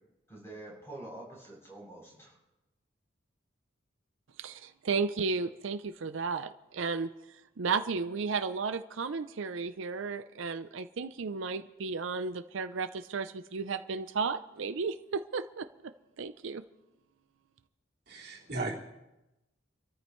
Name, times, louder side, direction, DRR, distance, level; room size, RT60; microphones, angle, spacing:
voice 1, 0.3-2.4, right 2 dB, 15° left, -3 dB, 7.4 m, -46 dB
voice 2, 4.4-7.1 7.6-15.7 16.2-16.6, right 4 dB, 75° right, 10 dB, 0.5 m, -33 dB
voice 3, 18.1-18.7, right 2 dB, 50° right, -4 dB, 3.1 m, -36 dB
27.5 x 13.5 x 3.2 m, 0.98 s
head